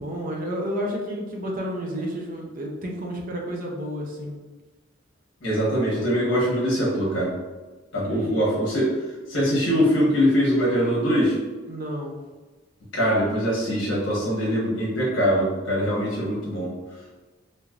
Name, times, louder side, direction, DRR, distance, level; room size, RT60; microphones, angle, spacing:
voice 1, 0.0-4.4 8.0-8.5 11.7-12.2, equal, 45° right, -1 dB, 0.6 m, -31 dB
voice 2, 5.4-7.3 7.9-8.9 9.3-11.4 12.9-16.7, equal, 75° left, -6 dB, 1.0 m, -22 dB
3.2 x 2.7 x 2.3 m, 1.2 s
head